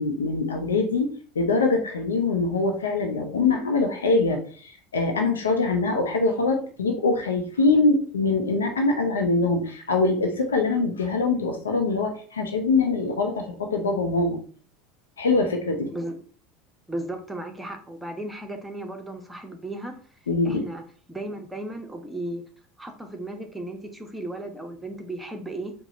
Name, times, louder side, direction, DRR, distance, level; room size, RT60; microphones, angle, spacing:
voice 1, 0.0-14.4 15.2-15.9 20.3-20.6, left 3 dB, 80° left, 4 dB, 0.7 m, -23 dB
voice 2, 16.9-20.0 20.4-20.8 21.1-22.4 22.8-25.7, right 1 dB, 5° right, 4 dB, 0.9 m, -35 dB
4.7 x 2.3 x 4.1 m, 0.43 s
figure-of-eight pair, 75°, 0 cm